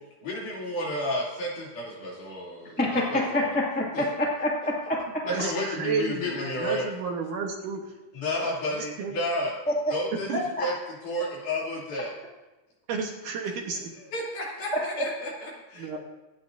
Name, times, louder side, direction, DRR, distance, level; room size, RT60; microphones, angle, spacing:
voice 1, 0.2-3.6 3.9-4.1 5.3-6.9 8.1-9.6 9.9-10.7 11.0-12.1 14.0-15.9, left 1 dB, 60° left, -4 dB, 4.2 m, -31 dB
voice 2, 2.8-5.0 10.6-10.7, left 1 dB, 5° left, -4 dB, 0.7 m, -26 dB
voice 3, 5.3-7.8 8.4-9.1 10.3-10.4 12.9-13.8 15.8-16.0, right 5 dB, 65° right, 1 dB, 2.4 m, -32 dB
25.0 x 9.5 x 2.6 m, 1.1 s
omnidirectional pair, 4.3 m